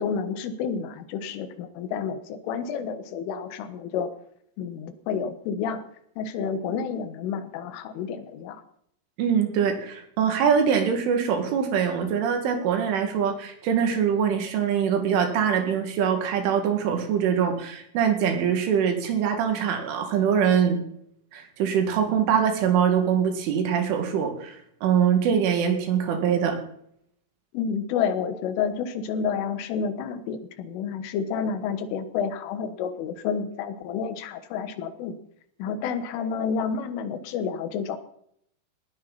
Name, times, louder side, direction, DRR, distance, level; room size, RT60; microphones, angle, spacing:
voice 1, 0.0-4.1 4.6-5.8 6.2-8.6 27.5-35.2 35.6-38.0, left 6 dB, 90° left, 10 dB, 3.9 m, -30 dB
voice 2, 9.2-20.8 21.3-24.6 24.8-26.6, right 7 dB, 80° right, 5 dB, 4.7 m, -23 dB
19.5 x 15.0 x 4.2 m, 0.70 s
omnidirectional pair, 5.5 m